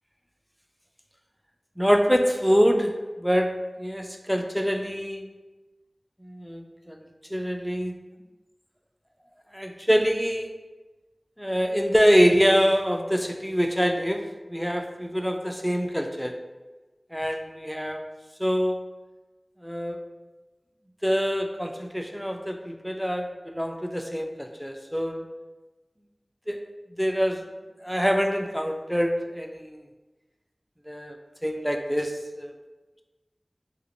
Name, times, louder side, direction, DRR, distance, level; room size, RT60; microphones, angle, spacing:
voice 1, 1.8-3.5 3.8-5.3 6.2-8.0 9.5-10.6 11.4-14.2 14.5-16.3 17.1-18.0 18.4-18.8 19.6-20.0 21.0-25.2 26.5-26.6 26.9-27.4 27.8-29.8 30.9-31.2 31.4-32.6, equal, ahead, 4 dB, 0.3 m, -25 dB
3.0 x 2.6 x 2.8 m, 1.2 s
wide cardioid pair, 40°, 0 cm